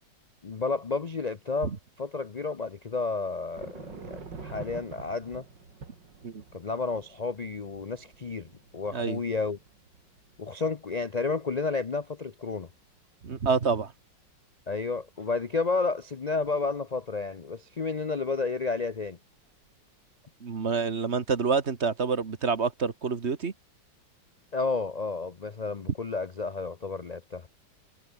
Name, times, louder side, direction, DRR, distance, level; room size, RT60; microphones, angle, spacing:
voice 1, 0.4-1.7 2.0-5.4 6.5-9.6 10.4-12.7 14.7-19.2 24.5-27.5, left 4 dB, 55° left, 0.4 m, -31 dB
sound 1, 3.6-12.2 12.7-13.3 13.8-13.9 15.0-15.6 16.4-16.8 18.9-19.1 19.4-19.6, right 4 dB, 80° right, 3.7 m, -48 dB
voice 2, 13.2-13.9 20.4-23.5, right 5 dB, 40° right, 1.7 m, -27 dB
omnidirectional pair, 1.9 m